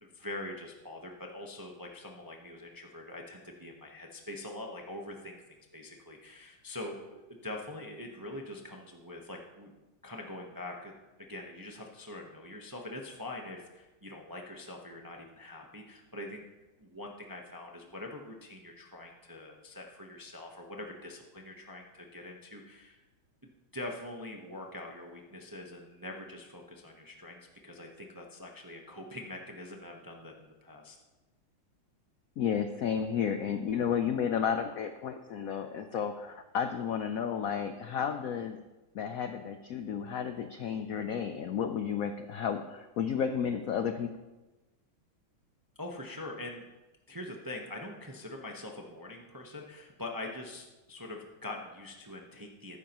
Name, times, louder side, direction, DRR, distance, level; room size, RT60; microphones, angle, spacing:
voice 1, 0.0-5.4 5.7-9.7 10.0-10.9 11.2-16.4 16.8-23.0 23.7-31.0 45.8-46.6 47.1-52.8, left 1 dB, 20° right, 1 dB, 0.5 m, -44 dB
voice 2, 32.4-38.6 38.9-44.1, left 7 dB, 80° left, 8 dB, 0.7 m, -32 dB
14.5 x 12.0 x 3.0 m, 1.1 s
omnidirectional pair, 2.2 m